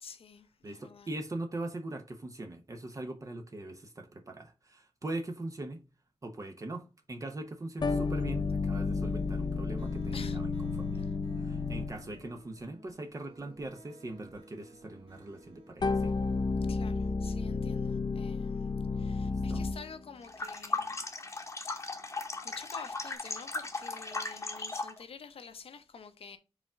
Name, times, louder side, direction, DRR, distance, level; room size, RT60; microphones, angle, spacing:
voice 1, 0.0-1.1 10.1-10.4 10.9-11.1 16.7-18.7 19.0-21.0 21.6-21.7 22.4-26.4, left 5 dB, 75° left, 0.9 m, -48 dB
voice 2, 0.6-5.8 6.2-11.0 11.4-16.1 19.2-19.7, right 2 dB, 35° right, 0.9 m, -41 dB
sound 1, 7.8-12.2 15.8-20.0, left 4 dB, 50° left, 0.6 m, -32 dB
sound 2, 8.8-16.4, equal, 85° right, 2.2 m, -56 dB
sound 3, 20.2-25.0, left 3 dB, 30° left, 1.0 m, -37 dB
4.9 x 3.7 x 5.5 m
wide cardioid pair, 130°, 10 cm